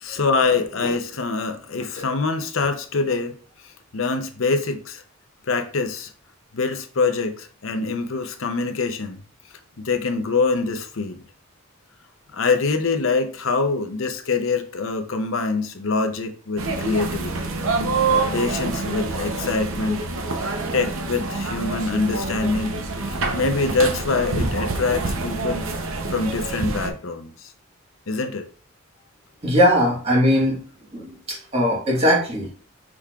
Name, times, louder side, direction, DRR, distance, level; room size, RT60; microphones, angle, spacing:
voice 1, 0.0-3.4 3.6-5.0 5.4-6.1 6.5-9.2 9.8-11.2 12.3-17.5 18.0-18.1 18.3-20.1 20.4-22.8 23.1-27.5 28.1-28.5, left 4 dB, 65° left, 0.7 m, -25 dB
sound 1, 16.6-26.9, right 3 dB, 70° right, 0.8 m, -26 dB
voice 2, 29.4-30.7 30.9-32.5, equal, 30° right, 1.5 m, -20 dB
6.1 x 3.5 x 2.4 m
head